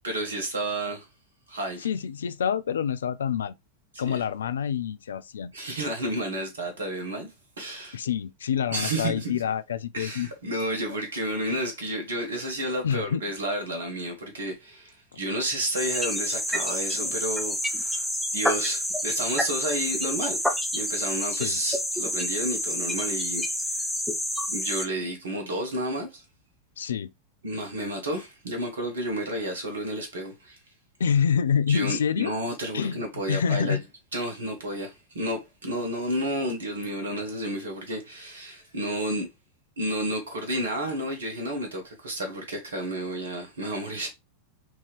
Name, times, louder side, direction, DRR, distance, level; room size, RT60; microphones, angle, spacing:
voice 1, 0.0-1.1 1.5-1.9 4.1-4.2 5.5-7.3 7.6-8.0 8.7-9.4 9.9-23.4 24.5-26.2 27.4-30.6 31.7-33.8 34.1-39.3 39.8-44.1, right 1 dB, 65° right, 1.3 m, -31 dB
voice 2, 1.8-3.5 4.0-5.5 7.9-10.3 12.8-13.2 21.3-21.6 26.8-27.1 31.0-32.3 32.7-33.8, left 7 dB, 65° left, 0.3 m, -27 dB
sound 1, 15.7-24.9, left 1 dB, ahead, 0.7 m, -28 dB
4.5 x 2.8 x 3.3 m
figure-of-eight pair, 90°, 0 cm